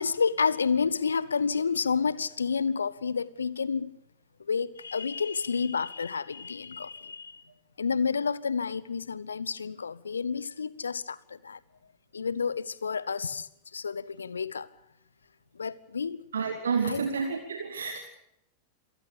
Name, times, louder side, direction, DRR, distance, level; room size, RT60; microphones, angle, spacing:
voice 1, 0.0-3.9 4.5-7.4 7.8-11.6 12.1-14.7 15.6-16.2 16.8-17.1, left 5 dB, 75° left, 1.0 m, -30 dB
voice 2, 16.3-18.0, right 5 dB, 70° right, 2.5 m, -29 dB
27.0 x 18.5 x 6.9 m
figure-of-eight pair, 90°, 0 cm